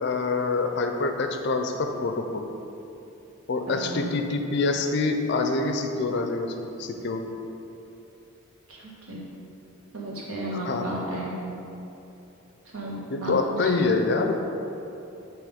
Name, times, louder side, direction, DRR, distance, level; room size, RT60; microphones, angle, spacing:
voice 1, 0.0-2.5 3.5-7.3 10.6-10.9 13.1-14.3, left 3 dB, 50° left, 5 dB, 0.4 m, -26 dB
voice 2, 3.7-4.1 8.7-9.2 9.9-11.4 12.7-13.9, right 1 dB, 80° right, -4 dB, 1.3 m, -34 dB
7.0 x 3.0 x 5.0 m, 2.9 s
head